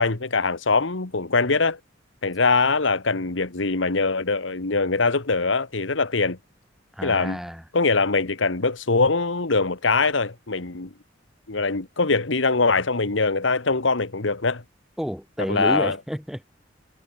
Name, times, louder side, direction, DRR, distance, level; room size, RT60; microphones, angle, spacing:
voice 1, 0.0-1.8 2.2-6.4 7.0-7.4 7.7-10.9 11.5-14.6 15.5-16.0, left 3 dB, 75° left, 1.5 m, -22 dB
voice 2, 6.9-7.6 15.0-16.4, equal, ahead, 4.2 m, -30 dB
head